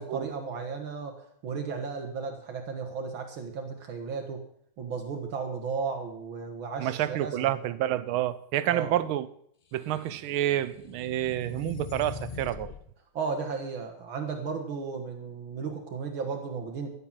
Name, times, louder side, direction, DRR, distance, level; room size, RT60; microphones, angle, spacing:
voice 1, 0.0-4.4 4.8-7.5 8.7-9.0 13.1-16.9, right 5 dB, 75° right, 2.2 m, -34 dB
voice 2, 6.8-9.3 9.7-12.7, right 12 dB, 90° right, 1.6 m, -29 dB
sound 1, 9.9-12.8, left 6 dB, 75° left, 0.4 m, -42 dB
14.0 x 7.9 x 7.4 m
omnidirectional pair, 2.2 m